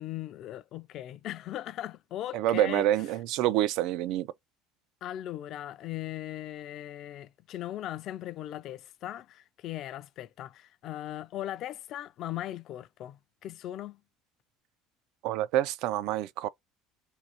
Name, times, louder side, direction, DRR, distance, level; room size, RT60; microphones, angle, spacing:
voice 1, 0.0-2.8 5.0-14.0, left 13 dB, 50° left, 0.3 m, -38 dB
voice 2, 2.3-4.3 15.2-16.5, right 13 dB, 65° right, 0.3 m, -27 dB
2.7 x 2.6 x 4.0 m
cardioid pair, 135°, 0 cm